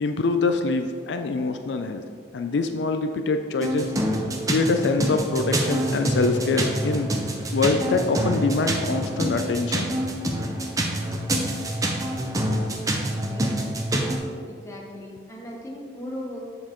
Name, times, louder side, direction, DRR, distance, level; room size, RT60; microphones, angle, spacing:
voice 1, 0.0-2.0 2.3-3.9 4.5-7.1 7.5-10.0 12.7-12.8, left 3 dB, 75° left, 7 dB, 0.4 m, -24 dB
sound 1, 3.6-14.2, right 1 dB, 20° right, 0.6 m, -26 dB
voice 2, 13.2-13.7 14.5-16.4, left 1 dB, 15° left, -2 dB, 1.0 m, -38 dB
7.4 x 6.5 x 3.0 m, 2.1 s
head